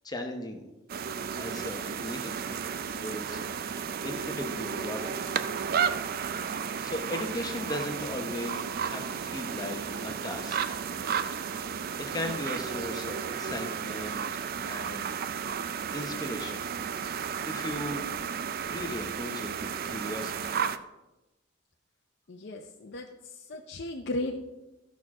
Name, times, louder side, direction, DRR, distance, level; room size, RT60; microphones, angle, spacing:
voice 1, 0.0-0.6 1.4-2.6 2.9-5.2 6.8-10.8 11.4-11.7 12.0-15.2 15.9-18.0 18.7-20.6, left 1 dB, 20° left, 4 dB, 0.8 m, -38 dB
sound 1, 0.9-20.8, right 7 dB, 50° right, 0.4 m, -33 dB
voice 2, 22.3-24.4, left 1 dB, 55° left, 1 dB, 0.6 m, -36 dB
13.5 x 6.2 x 3.6 m, 1.0 s
head